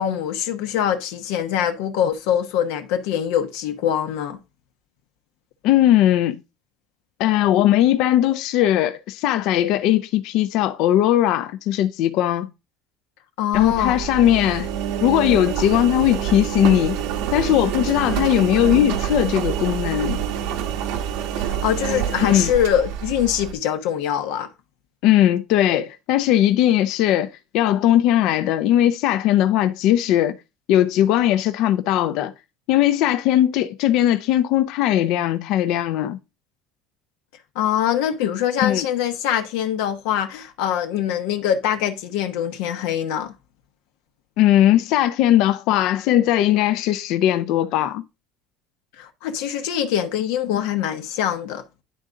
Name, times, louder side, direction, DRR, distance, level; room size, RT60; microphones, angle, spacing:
voice 1, 0.0-4.4 13.4-14.0 21.4-24.5 37.5-43.3 49.0-51.6, left 10 dB, 85° left, 0.9 m, -23 dB
voice 2, 5.6-6.4 7.2-12.5 13.5-14.7 15.0-17.0 17.3-20.2 22.2-22.5 25.0-30.4 30.7-32.3 32.7-36.2 38.6-38.9 44.4-48.0, left 12 dB, 60° left, 0.5 m, -19 dB
Engine, 13.5-23.5, right 9 dB, 75° right, 1.0 m, -26 dB
10.5 x 3.8 x 3.8 m
cardioid pair, 155°, 0 cm